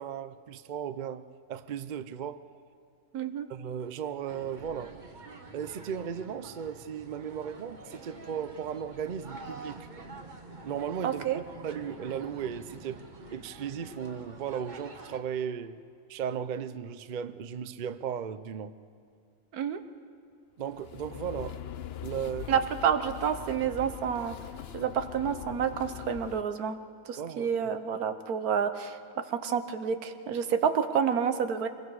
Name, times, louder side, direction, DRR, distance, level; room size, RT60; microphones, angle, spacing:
voice 1, 0.0-2.4 3.5-5.0 5.5-9.9 10.6-13.0 13.3-15.8 16.1-18.8 20.6-21.6 22.0-22.6 27.2-27.7, right 8 dB, 55° right, 0.5 m, -36 dB
voice 2, 3.1-3.5 11.0-11.4 19.5-19.8 22.5-24.4 24.7-26.8 27.1-29.0 29.3-31.7, right 7 dB, 85° right, 1.4 m, -29 dB
sound 1, 4.3-15.2, right 3 dB, 35° right, 1.2 m, -47 dB
sound 2, 20.6-26.4, left 10 dB, 55° left, 0.7 m, -42 dB
26.0 x 21.5 x 4.8 m
omnidirectional pair, 1.5 m